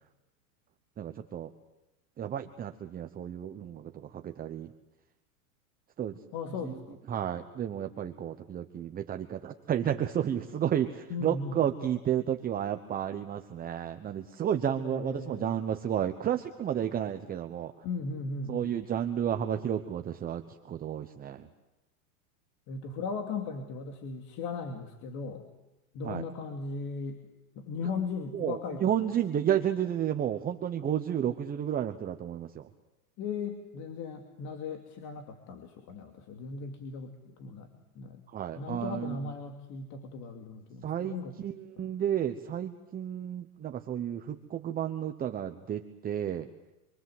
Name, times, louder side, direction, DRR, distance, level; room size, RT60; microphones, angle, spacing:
voice 1, 1.0-1.5 2.2-4.7 6.0-6.2 6.6-6.8 7.1-17.8 18.5-21.5 26.0-26.3 28.3-32.7 38.3-39.3 40.8-46.5, right 10 dB, 20° right, 7 dB, 1.0 m, -32 dB
voice 2, 6.3-7.0 11.1-11.6 14.8-15.5 17.8-18.7 22.7-25.5 25.9-27.3 27.5-28.9 33.2-37.7 37.9-38.2 38.6-41.3 41.8-41.9, left 4 dB, 40° left, 5 dB, 2.6 m, -37 dB
28.0 x 24.0 x 7.9 m, 0.99 s
supercardioid pair, 140°, 43 cm